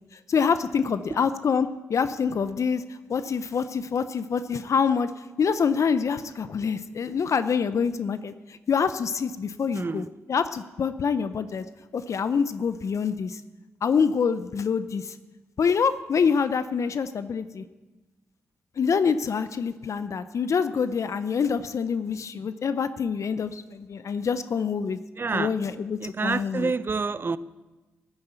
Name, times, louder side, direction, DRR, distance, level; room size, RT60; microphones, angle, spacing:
voice 1, 0.1-11.6 11.9-13.4 13.8-15.2 15.6-17.6 18.8-25.0 25.3-26.7, left 6 dB, 60° left, 12 dB, 0.7 m, -26 dB
voice 2, 9.7-10.1 25.2-25.5 26.0-27.4, right 4 dB, 35° right, 17 dB, 0.6 m, -28 dB
13.0 x 9.8 x 8.1 m, 1.2 s
supercardioid pair, 45°, 6 cm